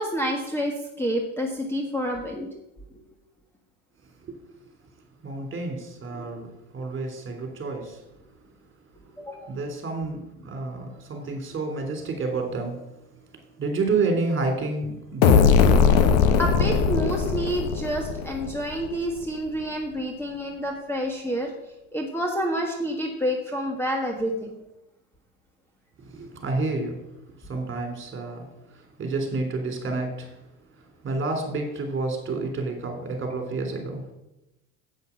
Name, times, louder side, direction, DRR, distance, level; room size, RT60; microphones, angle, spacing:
voice 1, 0.0-2.5 2.9-3.0 9.2-9.6 16.4-21.5 21.9-24.5 27.5-27.6, equal, 5° left, 1 dB, 1.5 m, -28 dB
voice 2, 5.2-8.0 9.5-15.6 26.1-27.0 27.4-30.4 30.8-34.0, right 3 dB, 30° right, 4 dB, 3.5 m, -30 dB
sound 1, 15.2-18.9, left 6 dB, 90° left, 1.2 m, -19 dB
8.4 x 8.1 x 7.2 m, 0.93 s
supercardioid pair, 100°, 40 cm